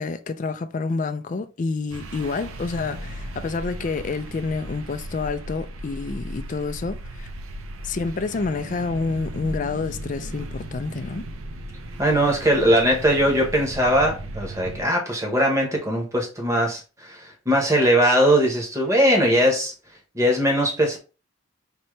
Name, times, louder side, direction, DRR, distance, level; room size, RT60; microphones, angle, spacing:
voice 1, 0.0-7.3 7.8-11.3, left 4 dB, 35° left, 0.3 m, -28 dB
sound 1, 1.9-14.8, right 1 dB, 80° right, 0.6 m, -36 dB
voice 2, 12.0-19.7 20.1-21.0, equal, 15° right, 1.1 m, -20 dB
5.3 x 2.9 x 3.2 m
head